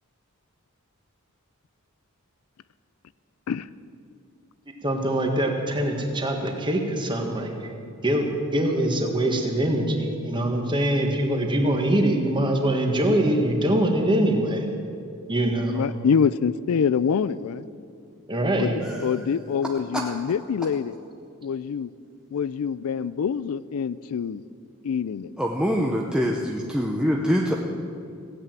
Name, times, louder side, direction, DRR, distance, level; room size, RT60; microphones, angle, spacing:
voice 1, 4.8-7.7 8.0-14.6 15.3-15.8 18.3-18.7, right 1 dB, 20° right, 3 dB, 1.6 m, -23 dB
voice 2, 15.7-17.7 18.6-21.0 21.4-21.9 22.3-24.4 24.8-25.3, left 6 dB, 70° left, 17 dB, 0.4 m, -25 dB
voice 3, 18.8-19.2 19.9-20.0 25.4-27.5, equal, 5° right, -1 dB, 0.7 m, -24 dB
16.0 x 8.3 x 9.0 m, 2.4 s
head